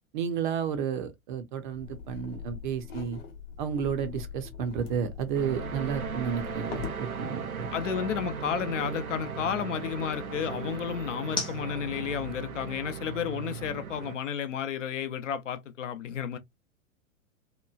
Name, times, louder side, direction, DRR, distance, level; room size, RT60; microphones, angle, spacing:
voice 1, 0.1-3.2 3.6-7.7, right 7 dB, 35° right, 0.6 m, -32 dB
sound 1, 1.6-15.8, left 4 dB, 10° left, 0.6 m, -47 dB
sound 2, 1.7-7.0, left 7 dB, 45° left, 0.9 m, -42 dB
sound 3, 5.3-14.2, right 6 dB, 90° right, 0.6 m, -37 dB
voice 2, 7.7-16.4, left 8 dB, 60° left, 0.6 m, -32 dB
2.9 x 2.2 x 2.3 m
figure-of-eight pair, 100°, 42 cm